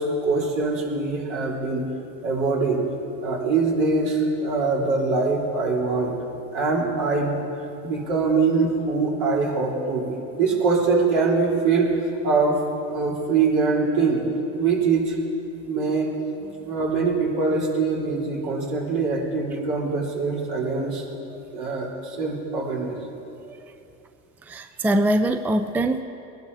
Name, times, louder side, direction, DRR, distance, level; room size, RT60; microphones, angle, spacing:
voice 1, 0.0-1.8 2.2-2.8 3.2-6.1 6.5-7.4 7.8-11.9 12.2-12.6 12.9-14.2 14.6-15.2 15.6-16.1 16.7-21.0 21.5-23.0, right 4 dB, 65° right, -4 dB, 3.7 m, -23 dB
voice 2, 24.5-26.0, right 1 dB, 5° right, 7 dB, 0.5 m, -22 dB
20.5 x 12.0 x 4.2 m, 2.8 s
supercardioid pair, 95°, 42 cm